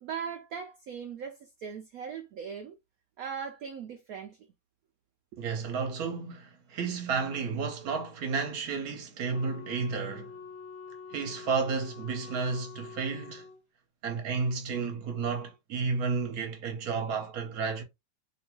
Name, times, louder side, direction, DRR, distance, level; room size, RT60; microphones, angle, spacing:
voice 1, 0.0-2.7 3.2-4.4 5.3-5.4, right 7 dB, 80° right, 0.8 m, -39 dB
voice 2, 5.4-10.3 11.1-13.5 14.0-17.8, right 5 dB, 60° right, 1.0 m, -32 dB
Wind instrument woodwind instrument, 9.3-13.6, left 5 dB, 15° left, 0.5 m, -46 dB
2.9 x 2.6 x 2.9 m
omnidirectional pair, 2.1 m